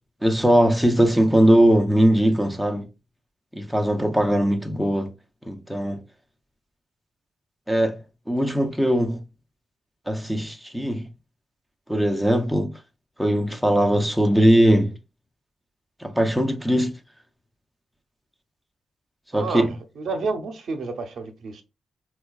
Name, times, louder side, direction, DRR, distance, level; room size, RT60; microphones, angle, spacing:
voice 1, 0.2-2.9 3.6-5.1 5.5-6.0 7.7-8.0 8.3-9.2 10.1-11.1 11.9-12.7 13.2-14.9 16.0-17.0 19.3-19.7, equal, ahead, 0.4 m, -20 dB
voice 2, 19.3-19.7 20.0-21.6, right 4 dB, 75° right, 0.6 m, -30 dB
4.3 x 2.3 x 2.3 m
cardioid pair, 75°, 0 cm